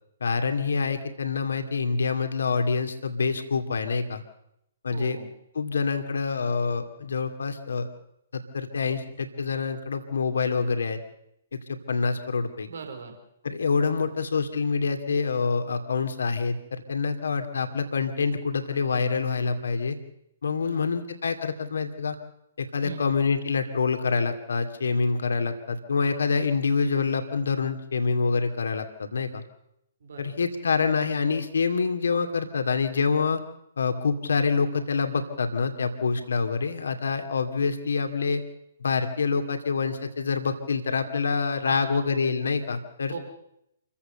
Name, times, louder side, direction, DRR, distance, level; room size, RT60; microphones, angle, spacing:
voice 1, 0.2-4.2 4.8-5.2 5.5-7.9 8.3-11.0 11.5-12.7 13.4-20.0 20.4-22.1 22.6-29.4 30.2-33.4 33.8-38.4 38.8-43.1, left 5 dB, 70° left, 7 dB, 2.4 m, -26 dB
voice 2, 4.9-5.3 12.7-13.2 13.9-14.1 20.6-20.8 22.8-23.1 30.0-30.4 41.6-42.1 43.1-43.2, right 5 dB, 65° right, 5 dB, 4.3 m, -39 dB
28.0 x 15.5 x 7.0 m, 0.80 s
figure-of-eight pair, 125°, 0 cm